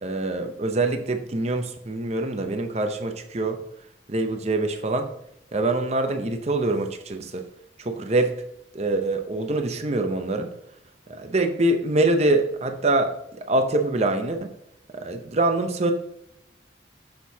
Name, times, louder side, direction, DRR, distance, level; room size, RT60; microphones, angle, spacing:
voice 1, 0.0-3.6 4.1-5.1 5.5-7.4 7.8-8.4 8.7-10.5 11.1-14.5 14.9-15.9, right 2 dB, 35° right, 6 dB, 0.7 m, -24 dB
9.6 x 6.5 x 2.8 m, 0.79 s
head